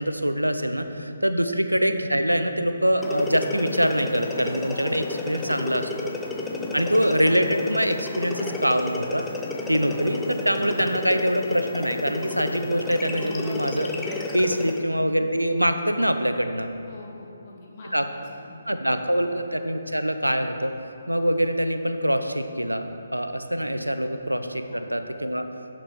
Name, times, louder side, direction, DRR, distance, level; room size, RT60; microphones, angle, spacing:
voice 1, 0.0-6.1 6.7-9.2 9.7-13.9 14.3-16.7 17.9-18.1 18.7-20.7 21.1-25.4, equal, 85° right, 8 dB, 0.7 m, -24 dB
sound 1, 3.0-14.9, left 3 dB, 10° left, 0.6 m, -32 dB
voice 2, 16.8-19.4 24.7-24.9, left 2 dB, 35° left, -3 dB, 1.9 m, -46 dB
11.5 x 6.1 x 4.4 m, 2.9 s
figure-of-eight pair, 140°, 0 cm